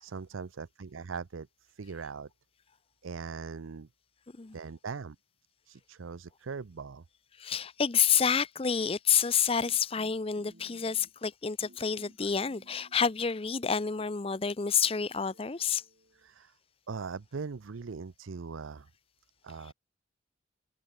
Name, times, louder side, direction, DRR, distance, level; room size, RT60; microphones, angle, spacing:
voice 1, 0.0-2.3 3.0-3.9 4.5-5.2 5.7-7.0 12.2-12.3 16.1-16.6 16.9-18.9 19.4-19.7, right 5 dB, 85° right, 0.6 m, -40 dB
voice 2, 7.4-15.8, left 7 dB, 30° left, 0.5 m, -28 dB
sound 1, 9.6-11.3 11.6-13.2 13.6-16.3, right 1 dB, 60° right, 3.9 m, -59 dB
head